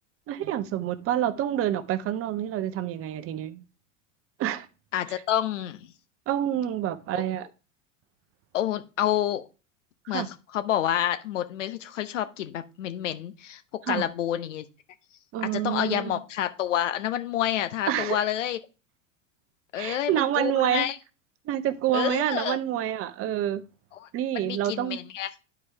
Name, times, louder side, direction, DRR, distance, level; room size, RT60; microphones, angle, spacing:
voice 1, 0.3-3.6 4.4-4.7 6.3-7.5 10.1-10.3 13.9-14.0 15.3-16.2 17.9-18.2 19.8-20.9 21.5-23.6 24.1-25.0, right 11 dB, 35° right, 0.9 m, -27 dB
voice 2, 4.9-5.8 7.1-7.2 8.5-9.4 10.1-10.2 10.5-13.6 13.9-14.6 15.4-18.6 19.7-21.0 21.9-22.6 23.9-24.1 24.3-25.3, left 11 dB, 70° left, 0.9 m, -28 dB
11.0 x 4.7 x 3.4 m
figure-of-eight pair, 85°, 39 cm